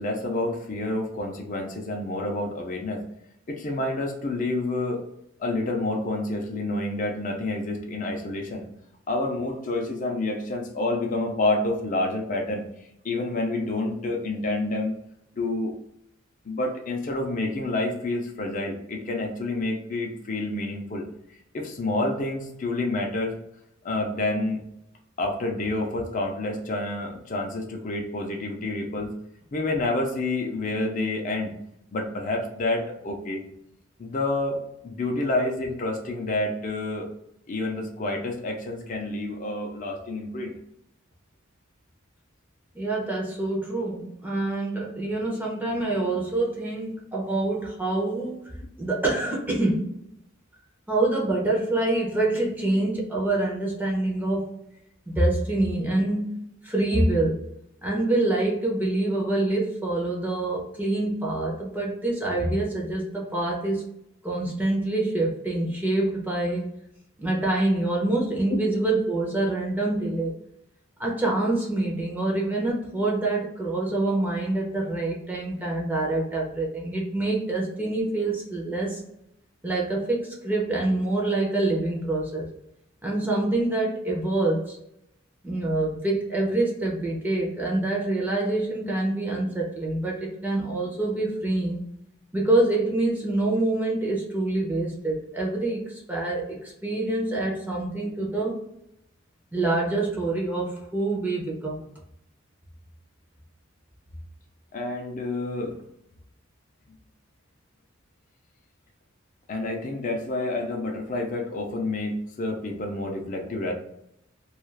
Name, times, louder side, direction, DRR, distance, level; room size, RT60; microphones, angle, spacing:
voice 1, 0.0-3.0 3.5-5.1 5.4-8.6 9.1-12.6 13.0-15.0 15.4-15.8 16.4-21.0 21.5-23.4 23.8-24.6 25.2-29.1 29.5-31.5 31.9-33.4 34.0-37.1 37.5-40.5 68.5-68.6 104.7-105.8 109.5-113.7, left 2 dB, 40° left, 1 dB, 0.5 m, -28 dB
voice 2, 42.7-49.9 50.9-54.6 55.1-56.3 56.6-57.4 57.8-63.8 64.2-66.7 67.2-70.4 71.0-79.0 79.6-82.5 83.0-84.8 85.4-91.8 92.3-98.6 99.5-101.8, right 2 dB, 10° right, -3 dB, 0.5 m, -26 dB
2.3 x 2.3 x 3.2 m, 0.79 s
head